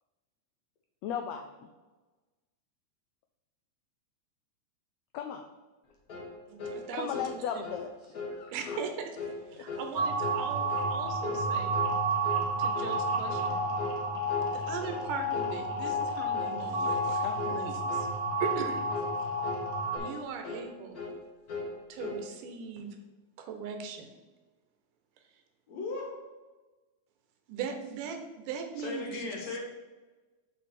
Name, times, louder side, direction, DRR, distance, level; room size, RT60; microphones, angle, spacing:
voice 1, 1.0-1.7 5.1-5.4 6.9-8.8 9.5-9.6 17.2-17.6, left 8 dB, 90° left, 5 dB, 1.5 m, -37 dB
sound 1, 6.1-6.3 6.6-6.8 7.1-7.3 7.6-7.9 8.1-8.4 8.7-8.9 9.2-9.4 9.7-9.9 10.2-10.4 10.7-10.9 11.2-11.5 11.7-12.0 12.2-12.5 12.7-13.0 13.3-13.5 13.8-14.0 14.3-14.5 14.8-15.0 15.3-15.5 15.8-16.0 16.3-16.6 16.8-17.1 17.4-17.6 17.9-18.1 18.4-18.6 18.9-19.1 19.4-19.7 19.9-20.2 20.4-20.7 20.9-21.2 21.5-22.2, left 3 dB, 45° left, 1.3 m, -38 dB
voice 2, 6.5-7.2 7.5-7.6 8.5-9.2 9.5-11.8 12.6-13.7 14.5-18.1 18.4-18.8 20.0-21.1 21.9-22.9 23.4-24.1 27.5-28.2 28.5-29.3, right 6 dB, 85° right, 5 dB, 2.4 m, -39 dB
sound 2, 9.9-20.0, right 1 dB, 45° right, 0.5 m, -31 dB
voice 3, 25.7-26.2 28.8-29.6, left 3 dB, 65° left, -1 dB, 2.3 m, -36 dB
6.3 x 6.2 x 4.3 m, 1.2 s
omnidirectional pair, 3.6 m